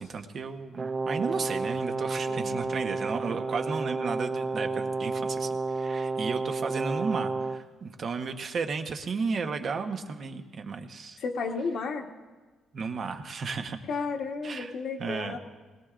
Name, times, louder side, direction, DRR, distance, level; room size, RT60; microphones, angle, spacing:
voice 1, 0.0-11.2 12.7-13.8 14.4-14.7 15.0-15.4, right 5 dB, 40° right, 6 dB, 1.0 m, -33 dB
Brass instrument, 0.7-7.7, right 3 dB, 25° right, 0.4 m, -31 dB
voice 2, 2.3-2.8 11.2-12.1 13.9-15.4, left 4 dB, 55° left, 3 dB, 1.2 m, -33 dB
21.0 x 19.0 x 2.5 m, 1.3 s
cardioid pair, 145°, 0 cm